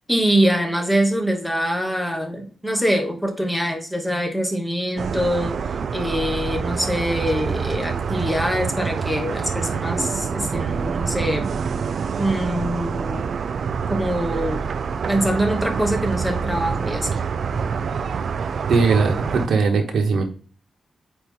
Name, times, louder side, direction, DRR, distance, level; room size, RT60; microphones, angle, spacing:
voice 1, 0.1-5.6 5.9-11.5 12.2-13.3 13.9-14.6 15.1-17.2, equal, 5° left, 3 dB, 1.0 m, -24 dB
sound 1, 5.0-19.5, right 6 dB, 60° right, 0.3 m, -26 dB
voice 2, 18.7-20.2, right 4 dB, 85° right, 4 dB, 1.2 m, -19 dB
8.6 x 2.9 x 3.7 m, 0.42 s
wide cardioid pair, 180°, 0 cm